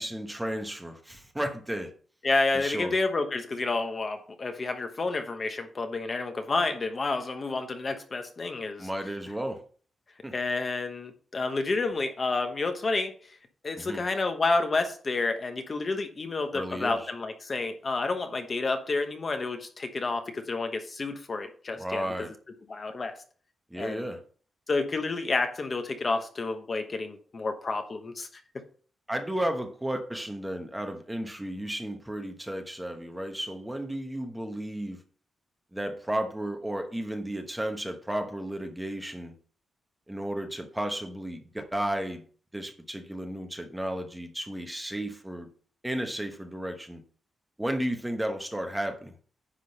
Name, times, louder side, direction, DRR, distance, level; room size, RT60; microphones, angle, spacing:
voice 1, 0.0-1.9 2.5-2.9 8.8-9.6 10.2-10.3 13.8-14.0 16.5-17.1 21.8-22.3 23.7-24.2 29.1-35.0 35.7-39.3 40.1-42.2 42.5-45.5 45.8-47.0 47.6-49.1, right 1 dB, 5° right, 5 dB, 1.1 m, -33 dB
voice 2, 2.2-8.9 10.3-13.4 13.6-22.3 22.7-23.1 23.8-24.1 24.7-28.3, left 3 dB, 30° left, 6 dB, 1.0 m, -30 dB
10.0 x 3.8 x 6.5 m, 0.42 s
wide cardioid pair, 160°, 0 cm